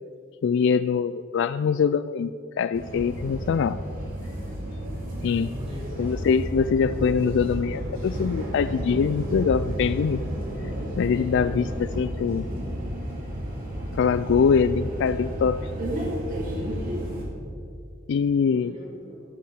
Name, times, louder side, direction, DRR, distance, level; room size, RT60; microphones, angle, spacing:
voice 1, 0.4-2.3 2.6-3.8 5.2-5.5 6.0-10.2 11.0-11.7 12.0-12.5 14.0-15.7 18.1-18.7, left 6 dB, 60° left, 13 dB, 0.3 m, -23 dB
sound 1, 2.7-17.2, equal, 45° right, 2.8 m, -32 dB
voice 2, 5.3-6.0 11.1-11.5 16.5-16.9 18.5-19.2, left 1 dB, 30° right, -4 dB, 4.0 m, -41 dB
14.5 x 12.5 x 4.8 m, 2.4 s
head